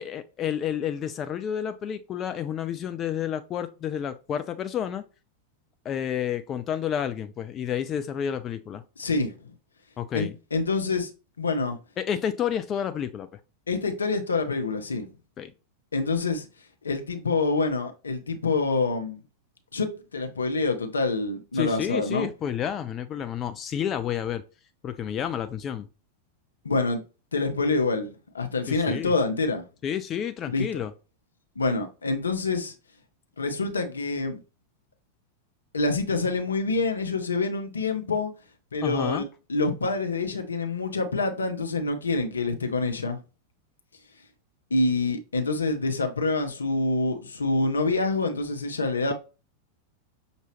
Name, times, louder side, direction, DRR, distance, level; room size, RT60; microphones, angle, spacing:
voice 1, 0.0-5.1 5.8-8.8 10.0-10.3 12.0-13.3 15.4-15.5 21.5-24.4 24.8-25.9 28.7-29.1 29.8-30.9 38.8-39.2, left 9 dB, 30° left, 0.3 m, -30 dB
voice 2, 9.0-9.5 10.1-11.1 11.4-11.8 13.7-15.1 15.9-16.5 16.8-19.2 19.7-22.3 26.6-27.0 27.3-29.6 30.5-30.7 31.6-32.7 33.4-34.4 35.7-38.3 38.7-43.2 44.7-49.1, left 3 dB, 75° left, 0.7 m, -26 dB
5.9 x 2.7 x 3.0 m
figure-of-eight pair, 90°, 0 cm